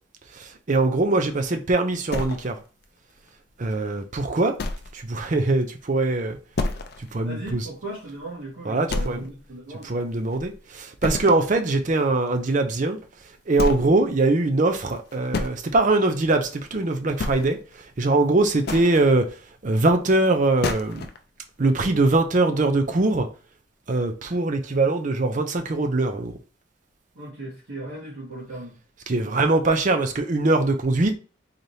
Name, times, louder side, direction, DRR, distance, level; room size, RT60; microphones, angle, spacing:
voice 1, 0.7-2.6 3.6-4.5 5.0-6.4 7.1-7.6 8.7-9.2 9.8-13.0 13.5-17.6 18.0-19.3 19.6-21.1 21.6-23.3 23.9-26.3 29.1-31.1, right 2 dB, 40° right, 0.5 m, -22 dB
sound 1, 2.1-2.8 3.3-3.4 3.9-4.0 4.6-5.0 5.3-5.4 5.8-5.9 6.5-7.1 7.5-7.6 8.0-8.1 8.9-9.5 9.8-10.6 11.0-11.5 12.9-13.0 13.5-14.0 14.9-15.5 16.6-16.8 17.1-17.7 18.4-19.0 20.2-20.3 20.6-21.2, left 2 dB, 50° left, 0.5 m, -29 dB
voice 2, 7.2-9.9 27.2-28.8, right 1 dB, 75° right, 1.9 m, -37 dB
4.0 x 3.2 x 2.8 m
head